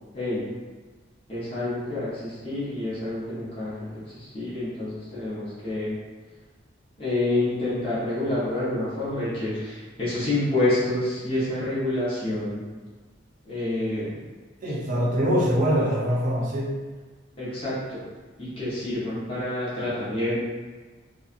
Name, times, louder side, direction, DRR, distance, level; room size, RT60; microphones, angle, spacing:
voice 1, 0.1-0.4 1.3-6.0 7.0-12.7 13.4-14.1 17.4-18.0 18.4-20.4, left 2 dB, 30° left, -11 dB, 0.9 m, -28 dB
voice 2, 14.6-16.8, equal, 45° right, -3 dB, 0.5 m, -23 dB
2.7 x 2.3 x 2.5 m, 1.3 s
head